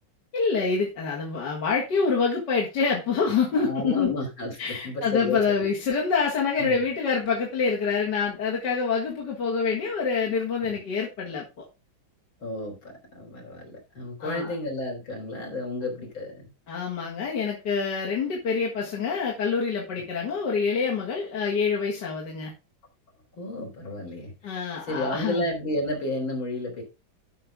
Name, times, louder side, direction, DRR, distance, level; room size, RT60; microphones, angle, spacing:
voice 1, 0.3-4.2 4.6-11.5 14.2-14.6 16.7-22.5 24.4-25.5, left 5 dB, 55° left, 2.4 m, -26 dB
voice 2, 3.5-4.5 4.8-5.7 6.6-6.8 10.6-10.7 12.4-12.7 13.1-16.5 23.3-24.6 24.9-26.8, left 1 dB, 70° left, 4.7 m, -31 dB
12.0 x 5.8 x 3.7 m
omnidirectional pair, 2.2 m